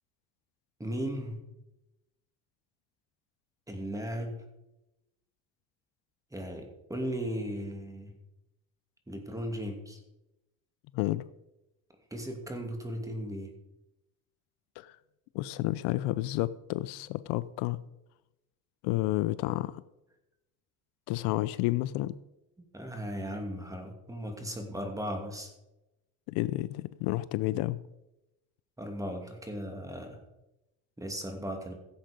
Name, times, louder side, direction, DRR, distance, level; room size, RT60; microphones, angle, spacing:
voice 1, 0.8-1.4 3.7-4.4 6.3-8.1 9.1-10.0 12.1-13.5 22.7-25.5 28.8-30.2 31.0-31.7, equal, 10° right, 3 dB, 2.6 m, -36 dB
voice 2, 10.9-11.2 14.8-14.9 15.3-17.8 18.8-19.7 21.1-22.1 26.3-27.8, left 17 dB, 80° left, 16 dB, 0.6 m, -30 dB
16.0 x 7.7 x 5.3 m, 0.94 s
cardioid pair, 120°, 40 cm